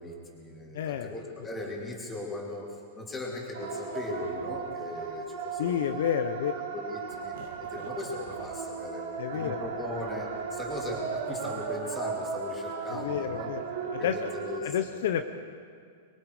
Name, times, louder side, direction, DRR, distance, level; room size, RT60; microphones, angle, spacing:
voice 1, 0.0-6.2 6.5-9.1 9.3-13.5 13.8-14.8, left 2 dB, 10° left, -2 dB, 3.3 m, -38 dB
voice 2, 0.7-1.1 5.6-6.5 9.2-9.6 12.9-13.6 13.9-14.1 14.6-15.3, left 9 dB, 65° left, 8 dB, 1.0 m, -29 dB
sound 1, 3.5-14.6, right 5 dB, 65° right, 2.6 m, -36 dB
25.0 x 21.5 x 5.1 m, 2.1 s
supercardioid pair, 165°, 0 cm